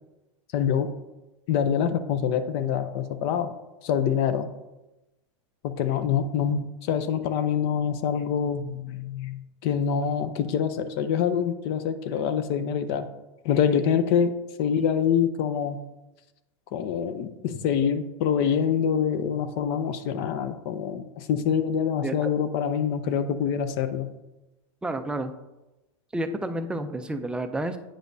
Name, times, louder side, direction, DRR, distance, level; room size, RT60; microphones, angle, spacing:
voice 1, 0.5-0.9 1.5-3.5 3.8-4.5 5.6-13.1 13.4-14.3 14.6-15.8 16.7-24.1, left 7 dB, 55° left, 11 dB, 0.5 m, -25 dB
voice 2, 24.8-25.3 26.1-27.8, right 1 dB, 5° right, 8 dB, 0.4 m, -30 dB
8.7 x 5.0 x 2.6 m, 1.0 s
supercardioid pair, 130°, 16 cm